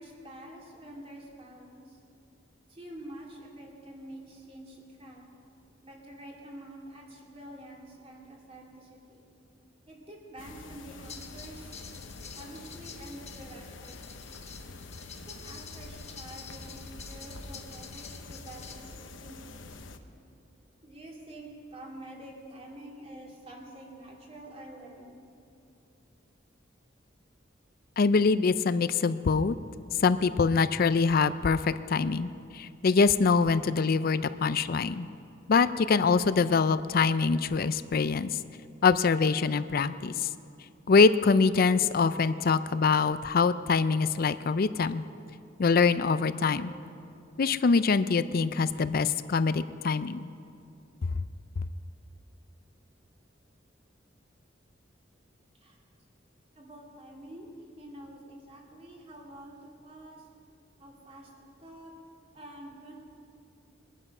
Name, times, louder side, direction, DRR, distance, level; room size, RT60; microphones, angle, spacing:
voice 1, 0.0-2.0 2.7-5.3 5.8-9.3 9.9-11.8 12.3-14.7 15.3-19.0 19.2-20.0 20.8-25.1 55.6-55.8 56.5-60.3 60.8-61.9 62.3-62.9, right 1 dB, 35° right, -2 dB, 2.8 m, -47 dB
sound 1, 10.4-20.0, left 3 dB, 85° left, 0.9 m, -46 dB
sound 2, 11.0-18.8, left 6 dB, 35° left, 1.4 m, -48 dB
voice 2, 28.0-29.5 30.0-32.3 32.5-35.1 35.5-38.3 38.8-40.3 40.9-45.0 45.6-46.7 47.4-50.3, left 4 dB, 50° left, 13 dB, 0.4 m, -24 dB
22.0 x 11.0 x 5.5 m, 2.5 s
head